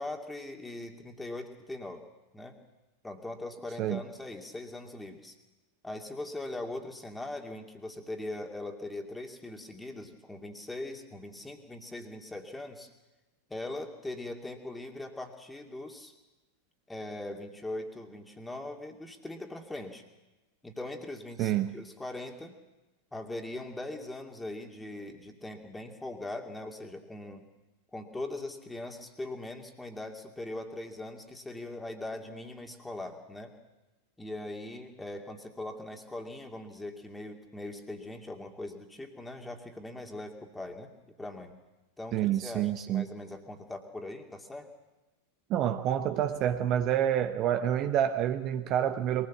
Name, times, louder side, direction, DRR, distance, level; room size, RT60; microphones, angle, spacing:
voice 1, 0.0-2.0 2.3-2.6 3.0-5.4 5.8-12.9 13.5-16.1 16.9-20.0 20.6-22.6 23.1-27.4 27.9-33.5 34.2-40.9 41.2-41.6 42.0-44.7, left 2 dB, 10° left, 4 dB, 2.5 m, -40 dB
voice 2, 21.4-21.7 42.1-43.0 45.5-49.3, right 10 dB, 35° right, 8 dB, 1.1 m, -28 dB
22.5 x 19.0 x 7.4 m, 1.1 s
figure-of-eight pair, 90°, 0 cm